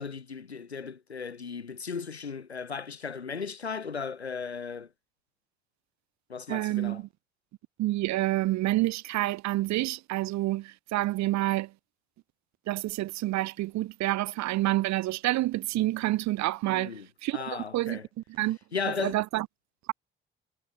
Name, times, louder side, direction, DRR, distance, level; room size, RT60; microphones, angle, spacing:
voice 1, 0.0-4.9 6.3-7.0 16.7-17.1 17.3-18.1 18.7-19.2, left 5 dB, 85° left, 2.0 m, -36 dB
voice 2, 6.5-7.1 7.8-11.7 12.7-16.9 17.2-18.0 18.3-18.6 18.9-19.5, right 17 dB, 60° right, 1.5 m, -28 dB
figure-of-eight pair, 40°, 31 cm